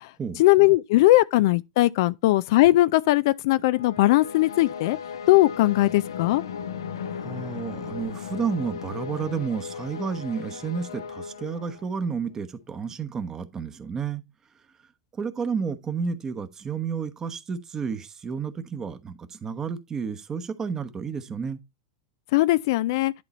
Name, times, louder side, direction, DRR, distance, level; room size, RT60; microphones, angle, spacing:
voice 1, 0.4-5.0 5.3-6.4 22.3-23.1, left 17 dB, 65° left, 0.4 m, -19 dB
sound 1, 3.7-12.1, left 6 dB, 85° left, 0.8 m, -37 dB
voice 2, 7.1-14.2 15.1-21.6, right 6 dB, 25° right, 1.0 m, -31 dB
11.0 x 3.8 x 4.3 m
hypercardioid pair, 110°, 2 cm